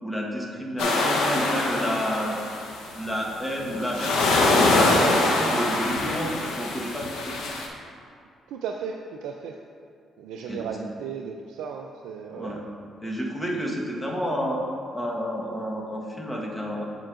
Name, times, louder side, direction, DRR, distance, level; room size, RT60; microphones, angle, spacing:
voice 1, 0.0-2.3 2.9-7.5 10.5-10.7 12.3-12.6 13.0-14.6 14.9-16.9, equal, 10° left, -2 dB, 1.2 m, -30 dB
sound 1, 0.8-3.0 3.6-7.7, left 2 dB, 90° left, 0.8 m, -24 dB
voice 2, 8.5-9.5 10.2-12.6, right 6 dB, 90° right, 2 dB, 0.3 m, -35 dB
7.6 x 7.4 x 2.5 m, 2.4 s
cardioid pair, 90°, 0 cm